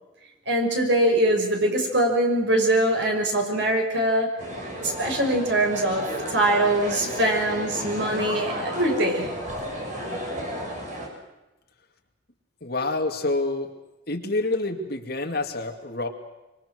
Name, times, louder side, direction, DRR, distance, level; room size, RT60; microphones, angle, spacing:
voice 1, 0.5-4.4 4.8-9.3, right 1 dB, 60° right, 2 dB, 5.9 m, -23 dB
sound 1, 4.4-11.1, equal, 40° right, 6.2 m, -32 dB
voice 2, 12.6-13.7 14.1-16.1, left 2 dB, 50° left, 4 dB, 2.5 m, -27 dB
25.5 x 24.5 x 6.3 m, 1.0 s
head